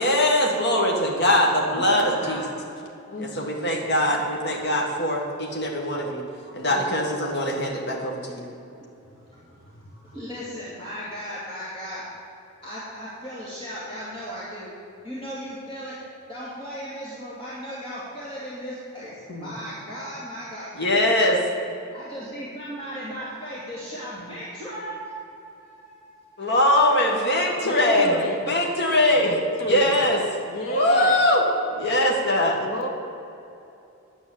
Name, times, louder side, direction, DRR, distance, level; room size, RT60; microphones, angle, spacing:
voice 1, 0.0-2.4 3.2-6.2 6.5-8.4 20.8-21.4 26.4-28.1 28.5-29.3 29.7-30.2 30.7-31.4 31.7-32.6, left 1 dB, 50° left, -1 dB, 1.7 m, -22 dB
voice 2, 1.8-2.4 6.4-6.5 7.9-8.3 9.1-12.1 12.6-14.7 15.0-16.0 16.3-20.9 21.9-26.6 30.7-31.0 32.5-32.8, equal, 25° left, -9 dB, 2.4 m, -37 dB
voice 3, 3.1-3.8 6.7-6.9 19.3-19.5 27.6-28.4 29.2-30.0 30.4-31.2 32.6-32.9, equal, 75° left, 0 dB, 2.0 m, -30 dB
10.0 x 7.7 x 8.6 m, 2.8 s
head